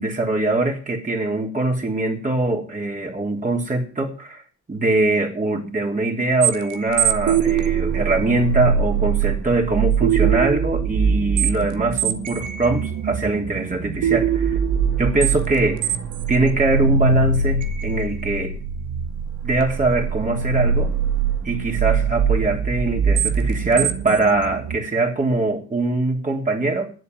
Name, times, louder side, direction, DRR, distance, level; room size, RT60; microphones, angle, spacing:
voice 1, 0.0-4.4 4.7-14.6 15.0-15.9 16.3-18.5 19.4-20.9 21.4-26.9, right 2 dB, 25° right, 0 dB, 3.6 m, -22 dB
sound 1, 6.4-24.8, right 6 dB, 80° right, 1.6 m, -22 dB
11.0 x 7.8 x 9.3 m, 0.39 s
cardioid pair, 90°, 30 cm